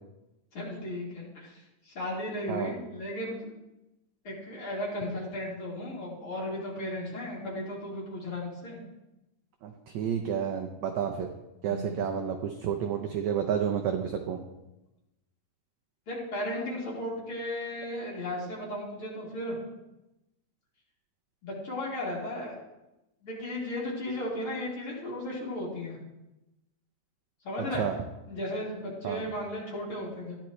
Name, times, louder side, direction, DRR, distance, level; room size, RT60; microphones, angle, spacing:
voice 1, 0.5-3.5 4.2-8.8 11.7-12.0 16.1-19.5 21.4-22.5 23.2-26.0 27.4-27.8 28.3-30.4, left 1 dB, 40° left, -5 dB, 3.3 m, -35 dB
voice 2, 9.6-11.3 11.6-14.4 27.8-27.9 29.0-29.2, right 8 dB, 80° right, 4 dB, 1.7 m, -30 dB
15.0 x 10.5 x 3.2 m, 0.96 s
omnidirectional pair, 4.1 m